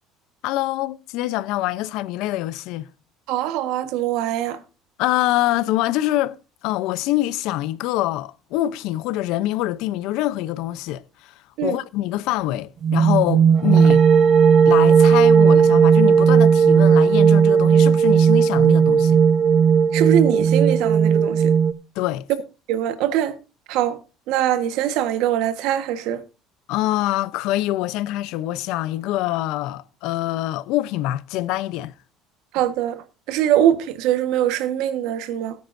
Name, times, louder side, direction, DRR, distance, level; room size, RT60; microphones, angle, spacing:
voice 1, 0.4-2.9 5.0-6.4 6.6-11.3 11.6-14.0 14.7-19.2 22.0-22.3 26.7-31.9, left 15 dB, 70° left, 0.7 m, -25 dB
voice 2, 3.3-4.6 11.6-11.8 19.9-21.5 22.7-23.4 23.7-24.0 24.3-26.2 32.5-33.0 33.3-35.5, right 11 dB, 70° right, 1.4 m, -22 dB
sound 1, 12.8-21.7, right 7 dB, 40° right, 1.0 m, -15 dB
17.5 x 9.4 x 2.6 m
cardioid pair, 130°, 0 cm